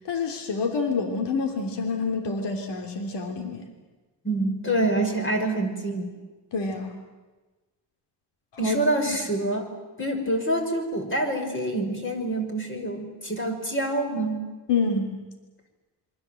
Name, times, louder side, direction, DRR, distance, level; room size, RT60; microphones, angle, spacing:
voice 1, 0.1-3.7 6.5-6.9 8.6-8.8 9.1-9.2 14.7-15.2, left 4 dB, 75° left, 4 dB, 3.4 m, -27 dB
voice 2, 4.2-6.1 8.6-9.7 10.0-14.5, right 1 dB, 30° left, 3 dB, 5.6 m, -26 dB
27.5 x 24.5 x 7.9 m, 1.2 s
cardioid pair, 115°, 42 cm